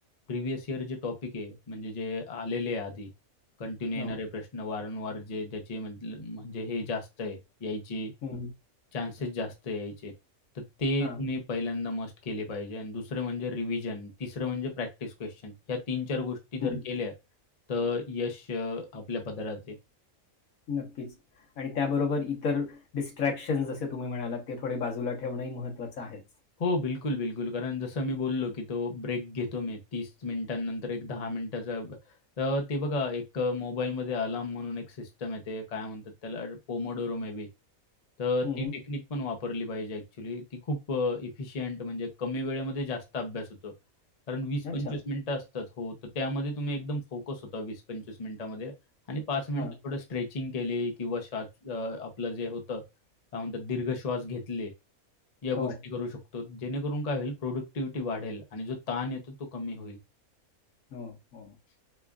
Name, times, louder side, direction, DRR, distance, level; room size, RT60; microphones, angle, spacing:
voice 1, 0.3-3.1 3.6-8.1 8.9-10.1 10.5-17.1 17.7-19.8 26.6-32.0 32.4-37.5 38.2-43.7 44.3-48.7 49.1-52.8 53.3-54.7 55.4-60.0, left 2 dB, 40° left, 0.6 m, -33 dB
voice 2, 20.7-21.2 21.6-26.2 38.4-38.7 44.6-45.0 49.6-49.7 55.6-55.8 60.9-61.5, left 5 dB, 70° left, 1.5 m, -32 dB
5.0 x 2.4 x 2.3 m
omnidirectional pair, 1.5 m